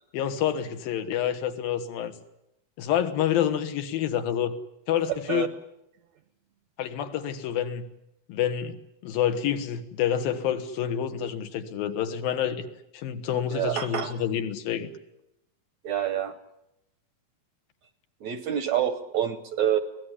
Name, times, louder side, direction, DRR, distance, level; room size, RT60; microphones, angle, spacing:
voice 1, 0.1-2.1 2.8-4.6 4.9-5.5 6.8-7.8 8.3-8.8 9.0-12.7 12.9-14.9, left 9 dB, 80° left, 8 dB, 3.3 m, -28 dB
voice 2, 13.5-14.2 15.8-16.4 18.2-19.8, right 10 dB, 65° right, 12 dB, 1.8 m, -27 dB
24.5 x 17.5 x 10.0 m, 0.85 s
omnidirectional pair, 4.2 m